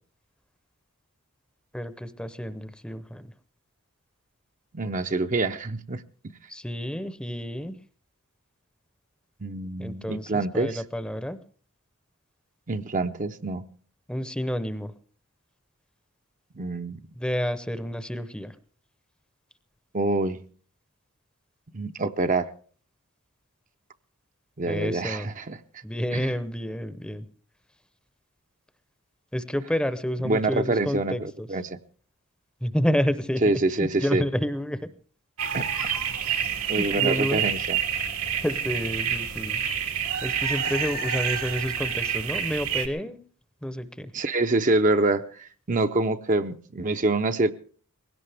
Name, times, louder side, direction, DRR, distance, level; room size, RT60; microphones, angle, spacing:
voice 1, 1.7-3.3 6.5-7.7 9.8-11.4 14.1-14.9 17.1-18.5 24.7-25.3 25.8-27.3 29.3-31.5 32.6-34.9 36.7-37.4 38.4-39.6 40.2-43.2 43.6-44.1, equal, 5° left, 12 dB, 0.7 m, -29 dB
voice 2, 4.7-6.0 9.4-10.8 12.7-13.7 16.6-17.0 19.9-20.4 21.7-22.5 24.6-25.6 26.1-26.3 30.2-31.8 33.4-34.2 35.5-35.9 36.7-37.8 44.1-47.5, right 2 dB, 35° right, 8 dB, 0.6 m, -26 dB
sound 1, 35.4-42.9, right 8 dB, 85° right, 1.8 m, -28 dB
20.5 x 17.0 x 3.4 m, 0.43 s
head